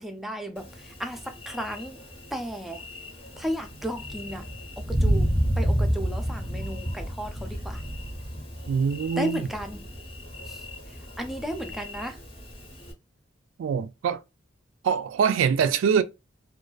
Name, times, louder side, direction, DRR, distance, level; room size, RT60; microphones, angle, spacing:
voice 1, 0.0-2.0 2.3-2.8 3.4-4.5 4.8-5.3 5.6-7.8 9.2-9.8 10.5-10.6 11.2-12.2, equal, ahead, 0.3 m, -34 dB
Thunder, 0.6-12.9, equal, 30° left, 0.7 m, -31 dB
voice 2, 8.7-9.4 13.6-14.2 14.8-16.0, right 7 dB, 85° right, 0.3 m, -24 dB
2.4 x 2.2 x 2.2 m
head